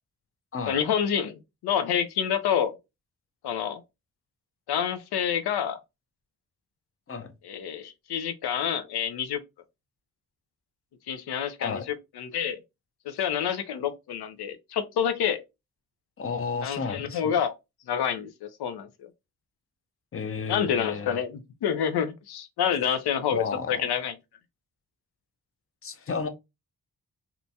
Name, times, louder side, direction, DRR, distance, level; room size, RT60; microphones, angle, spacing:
voice 1, 0.7-2.7 3.4-3.8 4.7-5.8 7.4-9.4 11.1-11.8 12.2-12.6 13.1-15.4 16.6-17.5 17.9-18.9 20.5-24.1, left 8 dB, 70° left, 0.6 m, -28 dB
voice 2, 16.2-17.3 20.1-21.2 23.3-23.9 25.8-26.3, left 5 dB, 35° left, 0.6 m, -32 dB
2.9 x 2.3 x 2.6 m
supercardioid pair, 45°, 40 cm